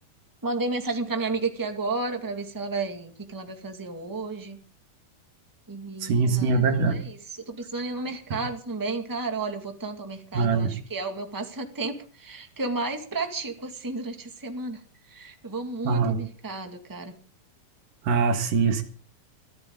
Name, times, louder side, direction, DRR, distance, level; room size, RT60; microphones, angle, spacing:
voice 1, 0.4-4.6 5.7-14.8 15.1-17.1, right 3 dB, 10° right, 5 dB, 1.1 m, -32 dB
voice 2, 6.0-7.0 10.3-10.8 15.8-16.2 18.0-18.8, right 4 dB, 70° right, 7 dB, 3.3 m, -23 dB
22.5 x 14.0 x 3.8 m, 0.41 s
omnidirectional pair, 4.0 m